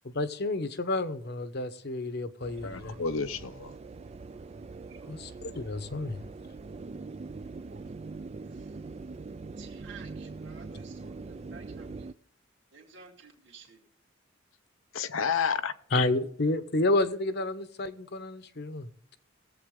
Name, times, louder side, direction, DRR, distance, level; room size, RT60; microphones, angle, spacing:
voice 1, 0.0-2.9 5.1-6.2 15.9-18.9, left 2 dB, 55° left, 1.0 m, -30 dB
sound 1, 2.4-12.1, right 3 dB, 30° right, 0.4 m, -43 dB
voice 2, 2.6-3.7 14.9-16.1, left 6 dB, 85° left, 0.8 m, -30 dB
voice 3, 3.6-4.1 4.9-5.1 7.5-8.0 8.4-9.2 9.6-12.1 12.7-13.8, right 6 dB, 65° right, 2.3 m, -54 dB
20.0 x 7.8 x 3.7 m
head